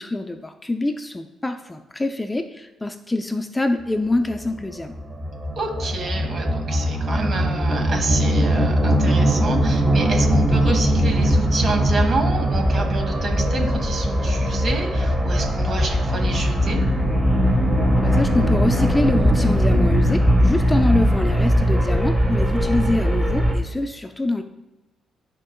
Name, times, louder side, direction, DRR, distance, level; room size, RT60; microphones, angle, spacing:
voice 1, 0.0-5.0 18.0-24.4, left 2 dB, 15° left, 7 dB, 0.5 m, -25 dB
sound 1, 4.3-23.5, equal, 15° right, 1.3 m, -20 dB
voice 2, 5.6-16.8, right 3 dB, 50° right, 3 dB, 1.6 m, -28 dB
12.0 x 4.6 x 2.3 m, 1.0 s
cardioid pair, 90°, 0 cm